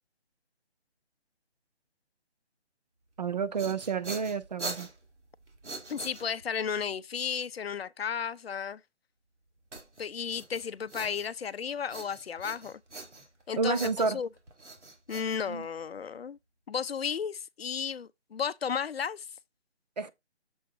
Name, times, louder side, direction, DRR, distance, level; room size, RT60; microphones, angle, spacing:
voice 1, 3.2-4.9 13.6-14.2 15.5-15.7 20.0-20.1, right 5 dB, 40° right, 0.6 m, -30 dB
sound 1, 3.3-6.7 9.7-11.5 11.9-13.4 13.7-16.0, right 2 dB, 85° right, 2.1 m, -43 dB
voice 2, 5.9-8.8 10.0-12.8 13.5-14.3 15.1-16.4 16.7-19.2, left 7 dB, 60° left, 0.5 m, -33 dB
7.0 x 3.6 x 5.2 m
figure-of-eight pair, 160°, 34 cm